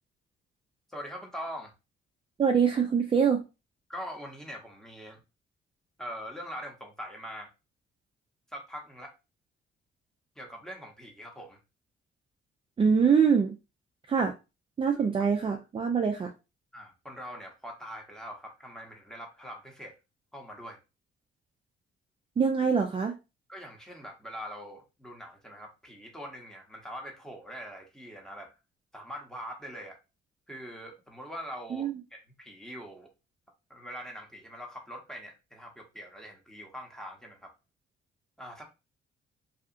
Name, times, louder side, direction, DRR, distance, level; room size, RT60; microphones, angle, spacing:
voice 1, 0.9-1.7 3.9-5.2 6.0-7.5 8.5-9.1 10.4-11.6 14.9-15.1 16.7-20.0 20.3-20.8 23.5-28.5 28.9-30.0 30.5-33.1 33.7-37.5 38.4-38.6, equal, 5° left, 0.9 m, -43 dB
voice 2, 2.4-3.4 12.8-13.5 14.1-14.3 14.8-16.3 22.4-23.2 31.7-31.9, right 6 dB, 25° right, 0.4 m, -24 dB
2.8 x 2.3 x 2.5 m
cardioid pair, 90°, 20 cm